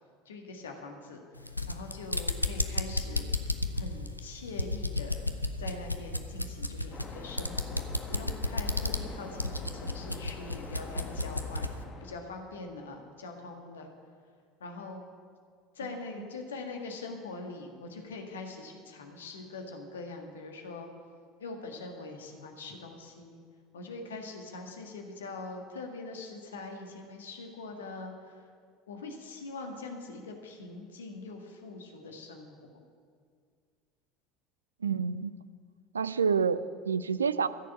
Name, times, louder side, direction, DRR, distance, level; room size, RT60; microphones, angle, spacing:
voice 1, 0.2-5.2 5.6-11.7 12.0-13.9 14.6-15.0 15.7-20.9 21.4-23.4 23.7-28.5 28.9-32.7, left 3 dB, 70° left, 3 dB, 1.6 m, -43 dB
sound 1, 1.4-11.8, left 2 dB, 90° left, 0.5 m, -33 dB
Waves surf, 6.9-12.2, left 3 dB, 30° left, 1.6 m, -46 dB
voice 2, 34.8-35.3 35.9-37.5, right 6 dB, 75° right, 15 dB, 0.4 m, -28 dB
14.0 x 6.7 x 8.2 m, 2.1 s
figure-of-eight pair, 70°, 0 cm